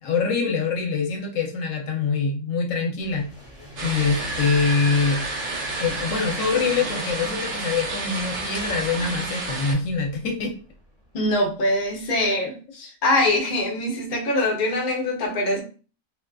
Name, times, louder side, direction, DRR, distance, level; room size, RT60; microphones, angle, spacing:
voice 1, 0.0-3.3 3.8-5.3 5.8-10.5, left 4 dB, 70° left, 2 dB, 0.9 m, -24 dB
sound 1, 3.0-10.3, right 1 dB, 5° left, 0.7 m, -38 dB
sound 2, 3.8-9.7, right 3 dB, 70° right, 1.2 m, -31 dB
voice 2, 11.1-15.6, left 1 dB, 50° left, 1 dB, 0.6 m, -23 dB
2.5 x 2.4 x 2.2 m, 0.37 s
omnidirectional pair, 1.4 m